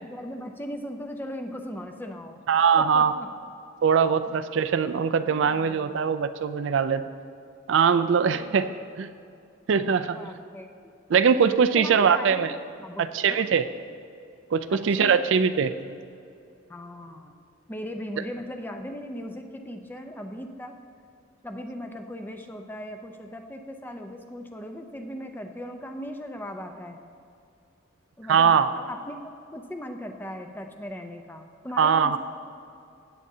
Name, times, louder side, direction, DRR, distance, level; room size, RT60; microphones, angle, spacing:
voice 1, 0.0-2.4 2.8-3.3 5.3-6.2 8.3-8.9 10.1-10.9 11.8-12.5 12.8-13.4 14.7-15.2 16.7-17.4 17.7-20.8 21.4-27.0 28.2-29.2 29.5-32.2, equal, 10° left, 4 dB, 0.5 m, -38 dB
voice 2, 2.5-3.1 3.8-7.0 7.7-8.7 9.0-9.1 9.7-10.2 11.1-12.5 13.0-13.6 14.5-15.7 28.3-28.7 31.8-32.2, right 6 dB, 65° right, 12 dB, 0.4 m, -21 dB
16.0 x 8.4 x 2.7 m, 2.5 s
head